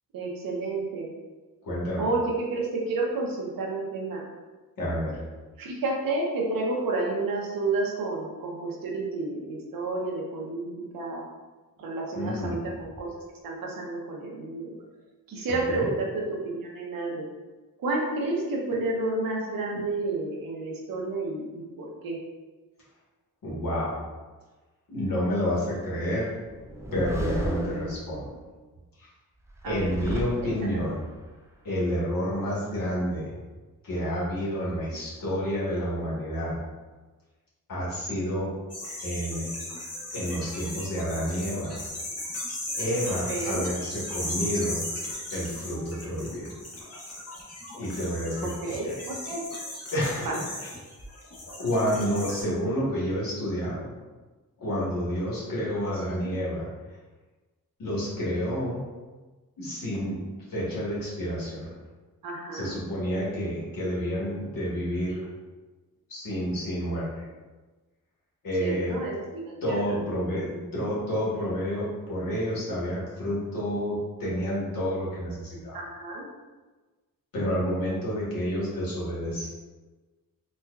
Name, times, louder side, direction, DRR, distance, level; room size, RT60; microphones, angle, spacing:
voice 1, 0.1-1.1 2.0-4.2 5.6-10.7 10.9-11.3 11.8-13.1 13.4-14.7 15.3-17.2 17.8-21.4 21.8-22.2 29.6-29.9 43.3-43.7 48.6-49.4 50.2-50.3 56.2-56.3 62.2-62.7 68.6-69.5 69.8-70.0 75.7-76.3, right 2 dB, 90° right, -2 dB, 0.8 m, -30 dB
voice 2, 1.6-2.1 4.8-5.2 12.1-12.6 15.7-15.9 23.4-24.0 24.9-26.3 26.9-28.2 29.0-29.1 29.6-31.0 31.6-33.4 33.8-36.6 37.7-38.5 39.0-39.5 40.1-41.8 42.8-44.8 45.3-46.5 47.8-49.0 49.9-50.7 51.6-53.9 54.6-56.7 57.8-58.8 59.6-60.1 60.5-61.7 62.5-65.3 66.1-67.3 68.4-69.0 69.6-75.8 77.3-79.5, equal, 80° left, -7 dB, 1.4 m, -29 dB
sound 1, 26.5-28.4 29.5-31.0, right 1 dB, 10° right, 0.4 m, -34 dB
sound 2, 38.7-52.4, left 1 dB, 45° left, 0.9 m, -37 dB
4.3 x 2.3 x 2.3 m, 1.3 s
cardioid pair, 80°, 33 cm